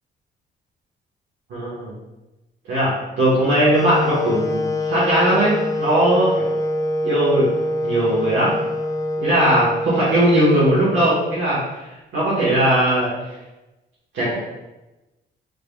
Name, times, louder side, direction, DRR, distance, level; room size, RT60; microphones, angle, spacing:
voice 1, 1.5-1.9 2.7-4.6 4.9-6.5 7.0-7.5 7.8-8.5 9.2-11.6 12.1-13.1 14.1-14.3, right 1 dB, 70° right, -9 dB, 1.4 m, -18 dB
Wind instrument woodwind instrument, 3.7-11.7, left 1 dB, 15° left, 0.3 m, -25 dB
3.8 x 3.3 x 2.3 m, 1.0 s
cardioid pair, 90°, 20 cm